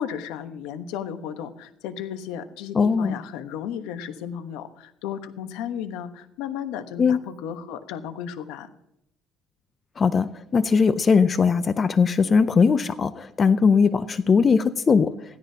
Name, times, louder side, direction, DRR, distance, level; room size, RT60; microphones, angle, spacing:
voice 1, 0.0-8.7, left 8 dB, 85° left, 9 dB, 1.1 m, -34 dB
voice 2, 2.8-3.2 7.0-7.2 10.0-15.1, left 5 dB, 30° left, 13 dB, 0.5 m, -20 dB
16.0 x 13.5 x 2.8 m, 0.80 s
cardioid pair, 130°, 0 cm